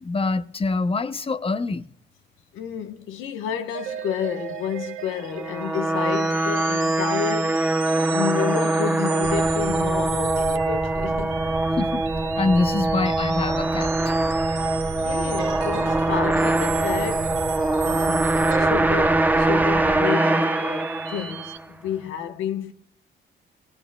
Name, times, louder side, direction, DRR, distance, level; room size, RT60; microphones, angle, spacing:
voice 1, 0.0-1.8 11.8-12.0 12.4-14.1, left 3 dB, 30° left, 0.7 m, -25 dB
voice 2, 2.5-7.9 8.1-11.4 15.0-17.4 17.9-22.7, left 8 dB, 85° left, 1.2 m, -31 dB
sound 1, 3.7-21.6, right 9 dB, 85° right, 1.2 m, -36 dB
sound 2, 5.3-21.6, right 2 dB, 10° right, 0.7 m, -23 dB
sound 3, 9.2-20.0, right 3 dB, 35° right, 1.2 m, -35 dB
22.0 x 17.5 x 2.3 m
cardioid pair, 90°, 20 cm